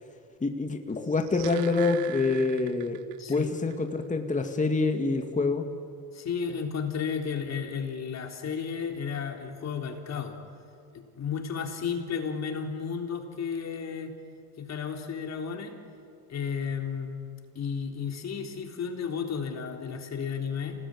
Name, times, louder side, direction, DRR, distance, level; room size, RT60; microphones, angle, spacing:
voice 1, 0.4-3.0 3.3-5.6, left 3 dB, 20° left, 5 dB, 2.1 m, -26 dB
sound 1, 1.0-3.4 3.7-3.8, right 18 dB, 90° right, 0.9 m, -42 dB
voice 2, 3.2-3.5 6.1-10.3 10.9-14.1 14.6-15.7 16.3-17.1 17.6-20.8, left 6 dB, 45° left, 3 dB, 3.7 m, -33 dB
28.0 x 18.5 x 9.7 m, 2.5 s
cardioid pair, 105°, 36 cm